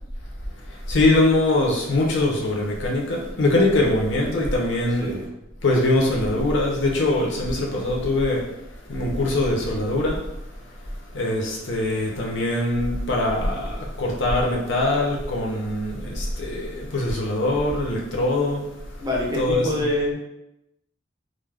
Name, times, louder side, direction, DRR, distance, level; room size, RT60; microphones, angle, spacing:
voice 1, 0.9-5.1 5.6-8.4 8.9-10.2 11.1-18.6 19.3-19.9, left 2 dB, 60° left, -2 dB, 0.6 m, -22 dB
voice 2, 5.0-5.3 19.0-20.1, left 1 dB, 20° right, -3 dB, 0.5 m, -25 dB
2.4 x 2.1 x 3.3 m, 0.86 s
head